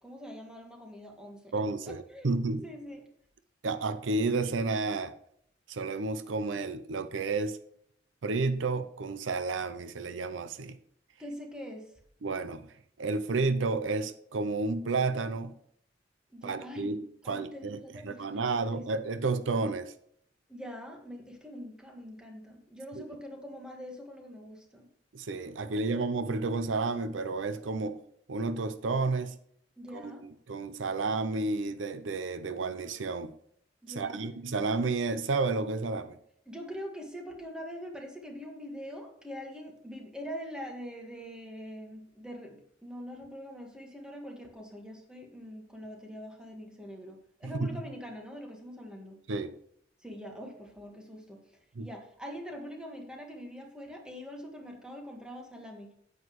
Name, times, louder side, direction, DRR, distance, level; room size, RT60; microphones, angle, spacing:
voice 1, 0.0-2.3 2.6-3.0 11.2-11.9 16.3-18.9 20.5-24.9 25.6-26.0 29.8-30.3 33.8-34.2 36.4-49.2 50.0-55.9, equal, 5° right, 1.6 m, -44 dB
voice 2, 1.5-2.7 3.6-5.1 5.7-7.6 8.2-10.8 12.2-12.7 13.0-15.6 16.4-19.9 22.9-23.0 25.1-28.0 28.3-29.3 29.9-30.1 30.5-33.3 34.0-36.2 47.4-47.8 49.3-49.5 51.8-51.9, right 3 dB, 80° right, 0.6 m, -31 dB
9.3 x 8.3 x 3.1 m
head